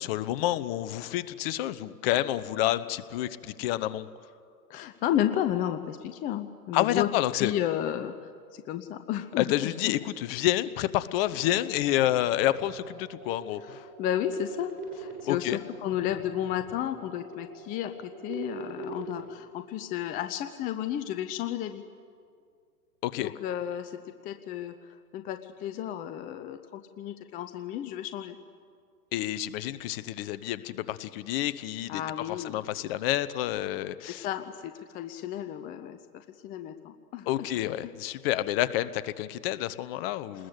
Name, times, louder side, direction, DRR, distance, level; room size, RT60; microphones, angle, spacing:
voice 1, 0.0-4.1 6.7-7.5 9.4-13.8 15.2-15.6 23.0-23.3 29.1-32.0 32.4-34.3 37.3-40.5, left 14 dB, 35° left, 15 dB, 0.9 m, -29 dB
voice 2, 4.7-7.1 7.4-9.9 13.6-21.8 23.2-28.4 31.9-32.6 34.1-37.3, left 11 dB, 20° left, 8 dB, 0.6 m, -33 dB
sound 1, 11.2-19.2, right 4 dB, 70° right, 7.3 m, -43 dB
28.0 x 20.5 x 8.2 m, 2.2 s
hypercardioid pair, 125°, 48 cm